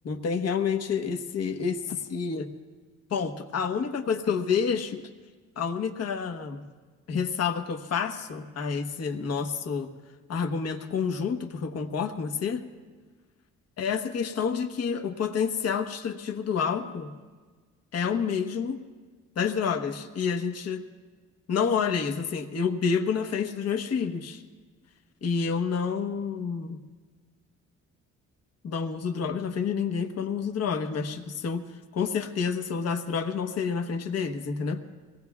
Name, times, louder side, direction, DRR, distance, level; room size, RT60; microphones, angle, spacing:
voice 1, 0.0-2.5 3.1-5.0 5.6-6.6 7.1-9.9 10.3-12.6 13.8-17.1 17.9-18.8 19.4-20.8 21.5-24.4 25.2-26.8 28.6-31.6 31.9-34.8, left 6 dB, 55° left, 6 dB, 1.2 m, -29 dB
23.5 x 18.5 x 2.4 m, 1.4 s
cardioid pair, 90°, 30 cm